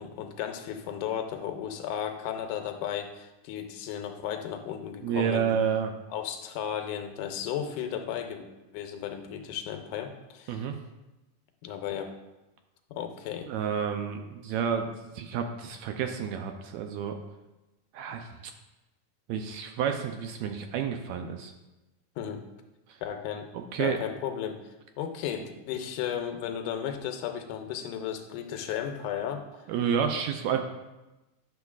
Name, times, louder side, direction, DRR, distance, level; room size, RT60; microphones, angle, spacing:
voice 1, 0.0-5.5 6.1-8.5 8.7-10.7 11.6-12.1 12.9-13.5 22.2-22.4 23.0-23.5 23.8-24.6 25.0-29.4, left 9 dB, 85° left, 5 dB, 2.1 m, -34 dB
voice 2, 5.0-5.9 10.5-10.7 13.5-17.1 17.9-18.3 19.3-21.5 23.5-24.0 29.7-30.6, right 7 dB, 80° right, 5 dB, 1.7 m, -30 dB
10.5 x 6.8 x 2.4 m, 1.0 s
omnidirectional pair, 3.7 m